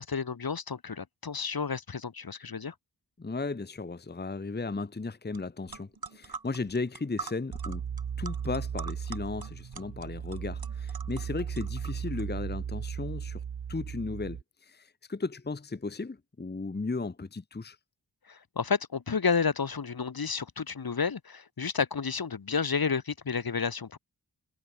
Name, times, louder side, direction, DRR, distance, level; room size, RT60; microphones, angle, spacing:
voice 1, 0.0-2.7 18.3-24.0, left 5 dB, 55° left, 1.5 m, -31 dB
voice 2, 3.2-7.8 8.2-13.4 13.7-17.8, left 3 dB, 25° left, 1.0 m, -35 dB
sound 1, 5.3-5.4 5.7-12.2, right 5 dB, 55° right, 2.7 m, -44 dB
sound 2, 7.5-14.4, right 7 dB, 70° right, 1.2 m, -36 dB
wide cardioid pair, 85°, 44 cm